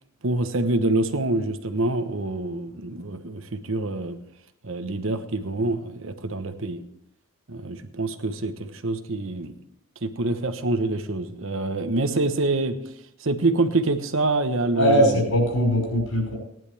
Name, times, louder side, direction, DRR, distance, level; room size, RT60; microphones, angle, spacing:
voice 1, 0.2-4.2 4.6-6.8 7.5-9.5 10.0-12.8 13.2-15.2, right 2 dB, 65° right, 9 dB, 1.1 m, -26 dB
voice 2, 14.7-16.4, equal, 70° left, 0 dB, 5.6 m, -21 dB
18.5 x 10.5 x 3.4 m, 0.75 s
head